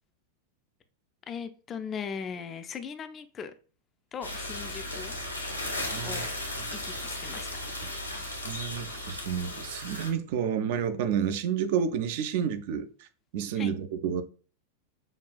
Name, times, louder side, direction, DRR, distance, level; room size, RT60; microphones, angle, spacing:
voice 1, 1.3-3.5 4.1-5.2 6.0-6.3 6.7-7.5 13.5-13.7, left 6 dB, 25° left, 0.3 m, -38 dB
sound 1, 4.2-10.1, left 1 dB, 85° left, 0.8 m, -36 dB
voice 2, 5.9-6.2 6.6-6.7 8.2-13.1 13.3-14.2, right 8 dB, 50° right, 0.4 m, -30 dB
5.3 x 2.3 x 2.3 m
figure-of-eight pair, 90°, 0 cm